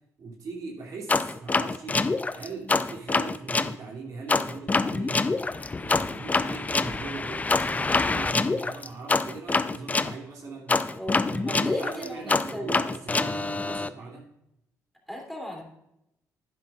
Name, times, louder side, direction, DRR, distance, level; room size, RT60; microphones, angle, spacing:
voice 1, 0.2-2.0 2.3-5.4 5.8-10.8 11.2-14.3, right 4 dB, 65° right, -3 dB, 2.8 m, -40 dB
sound 1, 1.1-3.7 4.3-10.1 10.7-13.9, left 3 dB, 25° left, 0.5 m, -26 dB
voice 2, 11.0-12.7 13.6-13.8 15.1-15.6, equal, ahead, -1 dB, 3.0 m, -37 dB
11.0 x 9.8 x 2.5 m, 0.82 s
supercardioid pair, 65°, 7 cm